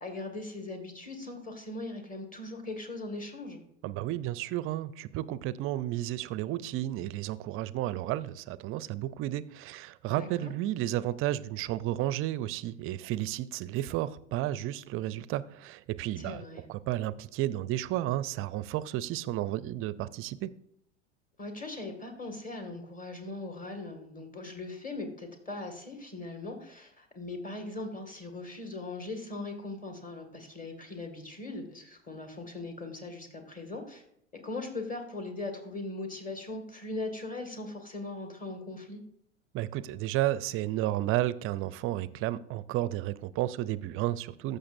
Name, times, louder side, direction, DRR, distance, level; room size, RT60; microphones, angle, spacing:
voice 1, 0.0-3.6 10.2-10.5 16.2-16.7 21.4-34.0 34.4-39.0, left 2 dB, 20° left, 5 dB, 2.0 m, -40 dB
voice 2, 3.8-16.4 16.7-20.5 39.5-44.6, right 14 dB, 35° right, 18 dB, 0.5 m, -32 dB
14.5 x 6.6 x 2.6 m, 0.72 s
hypercardioid pair, 85°, 36 cm